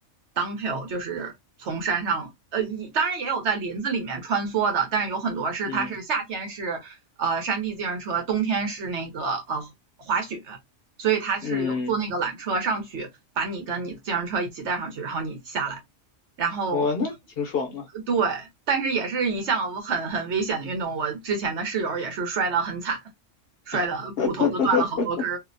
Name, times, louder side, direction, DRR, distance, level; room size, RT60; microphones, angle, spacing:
voice 1, 0.4-1.3 1.6-9.7 10.1-10.6 11.0-13.1 13.4-15.8 16.4-16.9 18.1-23.0 23.7-25.4, right 5 dB, 65° right, 1.1 m, -27 dB
voice 2, 11.4-11.9 16.7-17.9 23.7-23.8 24.2-25.1, left 6 dB, 60° left, 0.7 m, -26 dB
2.7 x 2.0 x 2.5 m
omnidirectional pair, 1.3 m